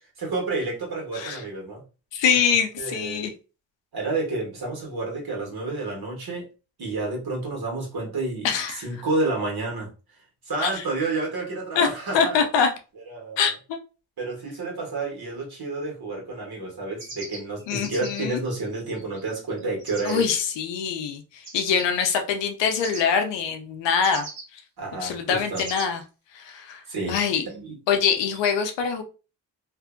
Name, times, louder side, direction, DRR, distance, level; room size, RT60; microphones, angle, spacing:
voice 1, 0.2-1.8 2.8-3.3 3.9-6.5 6.8-9.9 10.4-12.4 13.1-13.4 14.2-20.2 24.8-25.6 26.9-27.2 27.4-27.8, right 3 dB, 60° right, -1 dB, 1.5 m, -30 dB
voice 2, 2.1-3.3 8.4-8.8 10.6-10.8 11.8-11.9 12.1-12.7 13.4-13.8 17.7-18.4 20.0-24.3 24.5-24.6 25.0-26.0 26.3-26.8 27.1-27.4 27.9-29.0, left 6 dB, 90° left, 6 dB, 0.6 m, -24 dB
sound 1, 17.0-20.3 21.4-21.9 22.7-23.0 24.0-24.4 25.5-25.9, right 3 dB, 90° right, 1.1 m, -39 dB
2.6 x 2.5 x 2.5 m, 0.33 s
supercardioid pair, 45°, 42 cm